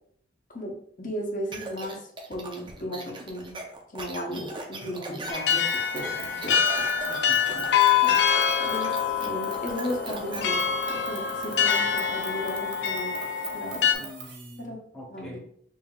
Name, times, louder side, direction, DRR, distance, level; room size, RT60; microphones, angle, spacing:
voice 1, 0.5-3.6 3.9-7.2 8.0-8.2 8.6-14.1 14.6-14.8 15.1-15.4, equal, 45° left, 1 dB, 0.9 m, -36 dB
sound 1, 1.5-10.6, right 2 dB, 25° right, 0.5 m, -39 dB
sound 2, 5.3-13.9, left 8 dB, 70° left, 0.4 m, -25 dB
sound 3, 5.4-14.6, right 5 dB, 85° right, 0.8 m, -43 dB
voice 2, 7.0-7.8 14.0-15.4, equal, 5° left, -4 dB, 1.0 m, -45 dB
5.5 x 2.7 x 2.3 m, 0.66 s
head